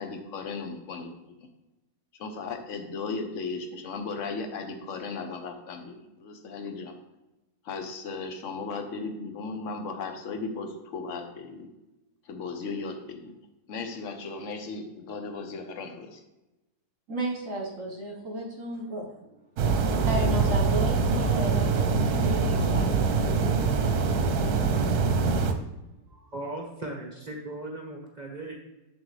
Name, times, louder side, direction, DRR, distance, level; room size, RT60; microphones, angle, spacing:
voice 1, 0.0-1.5 2.2-6.9 7.6-11.7 12.2-13.4 13.7-16.2, left 4 dB, 55° left, 5 dB, 1.2 m, -36 dB
voice 2, 17.1-19.1 20.0-23.0 26.1-26.3, equal, 55° right, -1 dB, 1.6 m, -33 dB
sound 1, 19.6-25.5, right 4 dB, 70° right, 1.3 m, -24 dB
voice 3, 26.3-28.5, right 2 dB, 30° right, -1 dB, 1.2 m, -37 dB
7.5 x 7.3 x 3.3 m, 1.0 s
omnidirectional pair, 1.7 m